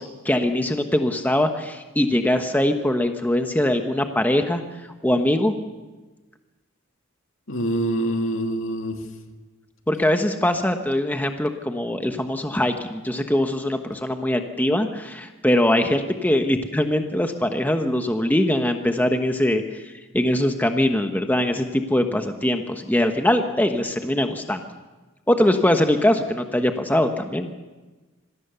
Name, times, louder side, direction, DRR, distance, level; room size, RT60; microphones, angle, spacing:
voice 1, 0.0-5.5 9.9-24.7 25.3-27.5, left 1 dB, 10° left, 1.0 m, -22 dB
voice 2, 7.5-9.0, right 1 dB, 65° left, 2.3 m, -25 dB
26.5 x 18.5 x 6.9 m
head